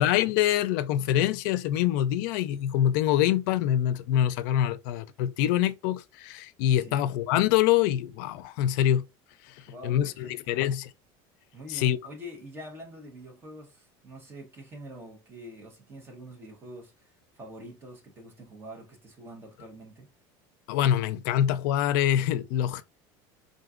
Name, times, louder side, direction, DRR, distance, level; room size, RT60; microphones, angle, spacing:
voice 1, 0.0-9.0 9.4-10.9 11.7-12.0 20.7-22.8, left 11 dB, 65° left, 0.5 m, -25 dB
voice 2, 9.6-10.7 11.5-20.1, equal, 20° right, 1.0 m, -45 dB
3.9 x 3.8 x 2.4 m
cardioid pair, 175°, 11 cm